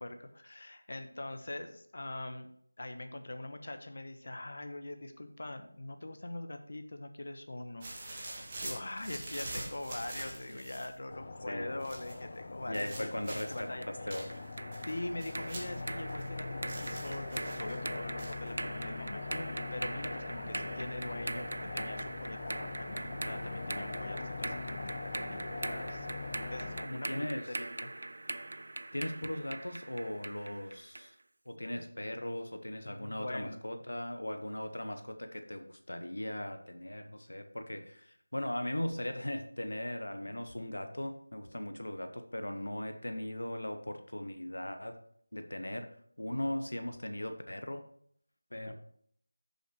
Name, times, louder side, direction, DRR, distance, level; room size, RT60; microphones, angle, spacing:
voice 1, 0.0-2.5 2.8-8.2 8.6-13.8 14.8-26.1 26.5-27.3 27.6-28.1 32.8-33.6 48.6-48.7, left 2 dB, 60° left, 7 dB, 1.0 m, -43 dB
sound 1, 7.8-11.0 11.8-12.2 12.7-13.7 14.1-16.3 16.7-17.8 18.2-18.5, right 2 dB, 25° right, 1.8 m, -44 dB
sound 2, 11.1-26.8, left 3 dB, 35° left, 0.5 m, -42 dB
voice 2, 11.5-11.8 12.7-14.4 26.9-27.5 28.9-31.1 31.5-45.0 45.3-45.9 46.2-47.9 48.5-48.7, left 1 dB, 90° left, 7 dB, 0.9 m, -38 dB
sound 3, 13.3-31.1, right 2 dB, 60° right, 0.3 m, -42 dB
9.3 x 6.9 x 3.1 m, 0.65 s
figure-of-eight pair, 170°, 0 cm